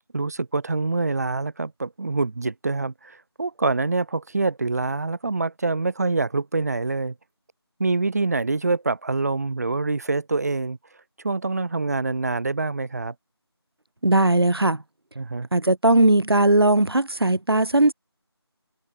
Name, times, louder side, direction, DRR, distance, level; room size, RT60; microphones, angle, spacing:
voice 1, 0.1-7.1 7.8-10.8 11.2-13.1 15.1-15.5, right 3 dB, 35° right, 5.0 m, -25 dB
voice 2, 14.0-14.8 15.5-17.9, right 2 dB, 60° right, 3.3 m, -18 dB
figure-of-eight pair, 165°, 14 cm